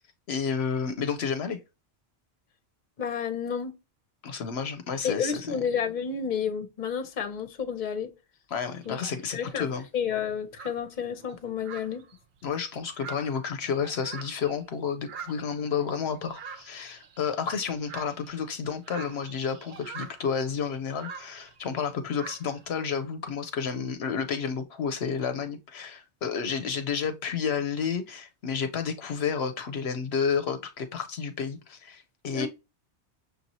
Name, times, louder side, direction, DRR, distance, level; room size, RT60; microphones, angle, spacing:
voice 1, 0.3-1.6 4.2-5.6 8.5-9.8 12.4-32.5, left 6 dB, 70° left, 0.8 m, -31 dB
voice 2, 3.0-3.7 5.0-8.1 8.9-9.0 9.3-9.7 9.9-12.0 32.3-32.5, left 7 dB, 45° left, 0.9 m, -30 dB
sound 1, 8.7-9.6 10.2-10.3 10.6-14.7 15.0-21.7 22.1-22.7, right 6 dB, 55° right, 0.6 m, -45 dB
6.5 x 2.7 x 2.9 m
omnidirectional pair, 1.1 m